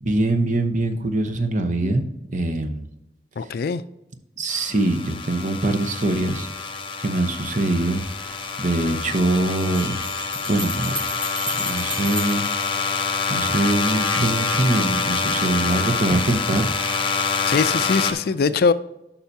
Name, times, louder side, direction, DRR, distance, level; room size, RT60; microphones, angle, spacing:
voice 1, 0.0-2.9 4.4-10.1 10.5-11.0 11.6-13.0 13.3-16.7, right 2 dB, 45° right, 0.8 m, -23 dB
voice 2, 3.4-3.8 17.5-18.7, left 5 dB, 60° left, 0.4 m, -21 dB
sound 1, 4.5-18.1, left 4 dB, 30° left, 0.8 m, -26 dB
Bell, 9.6-13.5, left 1 dB, 5° left, 1.6 m, -33 dB
11.5 x 5.6 x 2.7 m
head